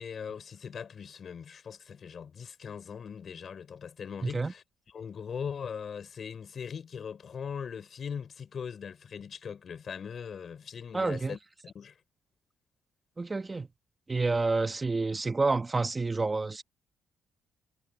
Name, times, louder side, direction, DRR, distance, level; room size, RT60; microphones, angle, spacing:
voice 1, 0.0-4.6 4.9-11.9, left 7 dB, 50° left, 5.6 m, -40 dB
voice 2, 4.2-4.5 10.9-11.4 13.2-13.7 14.1-16.6, right 3 dB, 25° right, 1.5 m, -29 dB
cardioid pair, 90°, 0 cm